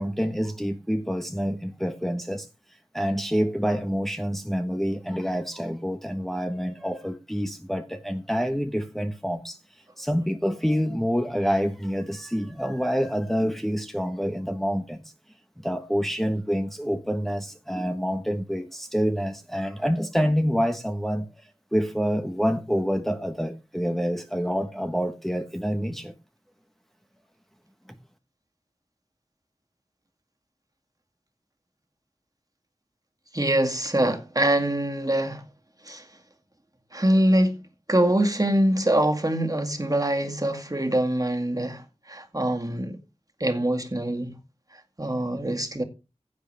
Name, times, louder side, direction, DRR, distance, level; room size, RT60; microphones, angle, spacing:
voice 1, 0.0-2.5 2.9-9.6 10.0-15.0 15.6-21.3 21.7-26.1 27.9-28.0, equal, ahead, 1.2 m, -27 dB
voice 2, 33.3-35.4 35.8-36.1 36.9-37.6 37.9-43.0 43.4-44.3 44.7-45.8, right 1 dB, 30° right, 2.1 m, -24 dB
15.5 x 8.2 x 3.4 m
wide cardioid pair, 45°, 13 cm